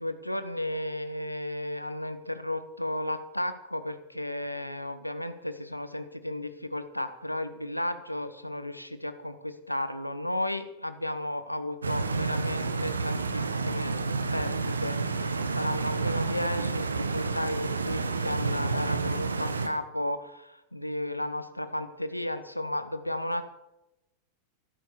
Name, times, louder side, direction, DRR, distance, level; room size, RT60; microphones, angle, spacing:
voice 1, 0.0-13.9 14.3-23.4, left 1 dB, 90° left, 11 dB, 1.1 m, -34 dB
Stream, 11.8-19.7, right 4 dB, 75° right, 1.3 m, -30 dB
14.5 x 12.5 x 6.7 m, 0.91 s
figure-of-eight pair, 90°, 0 cm